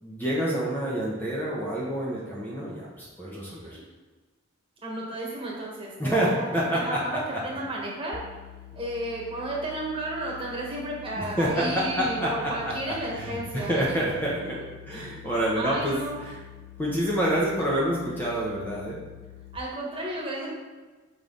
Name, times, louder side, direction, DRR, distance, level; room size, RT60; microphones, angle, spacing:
voice 1, 0.0-3.8 6.0-7.4 11.2-14.6 14.8-16.4 16.8-19.0, right 1 dB, 10° left, -5 dB, 0.9 m, -28 dB
voice 2, 3.2-3.8 4.8-8.2 8.7-13.9 14.9-15.2 15.5-16.2 19.5-20.5, right 1 dB, 25° right, -3 dB, 1.5 m, -33 dB
sound 1, 8.1-19.6, left 13 dB, 35° left, 0.3 m, -47 dB
5.7 x 5.5 x 3.9 m, 1.3 s
head